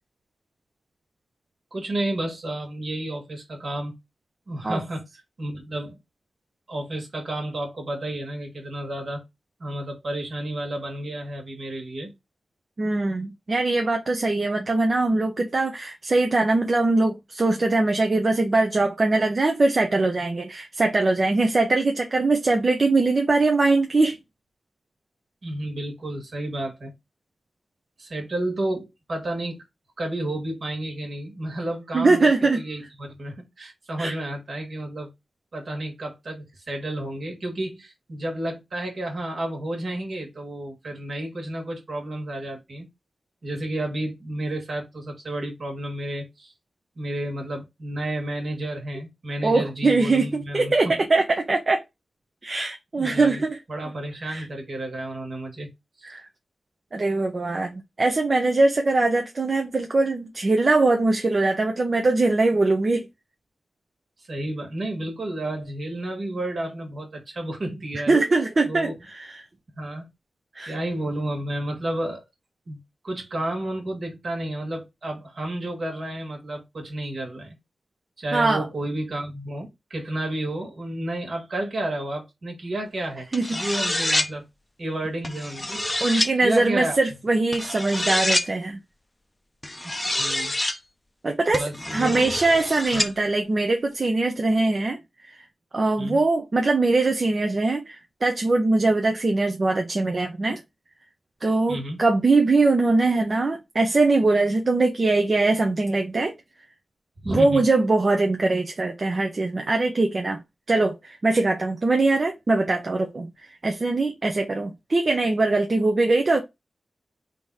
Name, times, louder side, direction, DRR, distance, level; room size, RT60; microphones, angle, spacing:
voice 1, 1.7-3.9 4.5-5.1 5.4-6.0 6.7-9.2 9.6-12.1 25.4-26.9 28.0-29.6 30.0-35.1 35.5-42.9 43.4-46.5 47.0-51.0 53.0-53.4 53.7-55.7 56.0-56.1 64.3-68.2 68.6-68.9 69.8-70.1 70.7-72.2 72.7-77.6 78.2-84.4 84.8-85.8 86.4-87.0 90.1-90.5 91.6-92.2 92.9-93.1 96.0-96.3 101.7-102.0 107.2-107.6, right 1 dB, 55° right, 1.7 m, -31 dB
voice 2, 12.8-24.2 31.9-32.6 34.0-34.1 49.4-51.8 52.4-53.6 54.2-54.4 56.1-56.2 56.9-63.1 68.1-69.4 70.5-70.7 78.3-78.7 83.3-83.8 86.0-88.8 91.2-91.6 91.9-95.0 95.2-95.4 95.7-100.6 101.4-106.3 107.2-110.4 110.7-110.9 111.2-116.4, right 3 dB, 40° right, 0.6 m, -22 dB
sound 1, 83.3-84.3 85.2-86.3 87.5-88.5 89.6-90.8 91.5-93.1, left 1 dB, 15° left, 0.5 m, -26 dB
3.7 x 2.7 x 4.7 m
wide cardioid pair, 120°, 0 cm